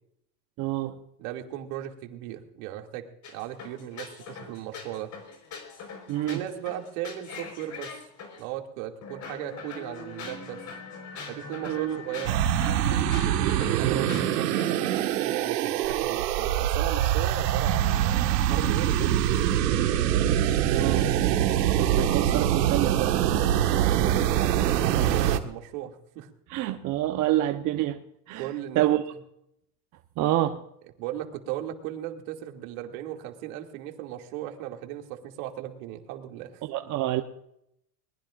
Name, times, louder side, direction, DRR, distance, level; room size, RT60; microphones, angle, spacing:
voice 1, 0.6-1.0 6.1-6.4 11.7-12.0 13.8-14.1 20.6-21.1 21.8-23.4 26.5-28.0 28.3-29.0 30.2-30.6 36.6-37.2, right 14 dB, 40° right, 1.0 m, -27 dB
voice 2, 1.2-5.1 6.3-7.9 8.4-10.6 11.3-12.4 13.6-19.6 23.7-26.3 28.4-29.0 31.0-36.6, right 12 dB, 60° right, 2.6 m, -37 dB
sound 1, 3.2-8.4 9.0-15.0, left 4 dB, 35° left, 4.6 m, -41 dB
sound 2, 12.2-25.4, right 11 dB, 80° right, 1.7 m, -24 dB
21.5 x 20.0 x 2.5 m
supercardioid pair, 125°, 48 cm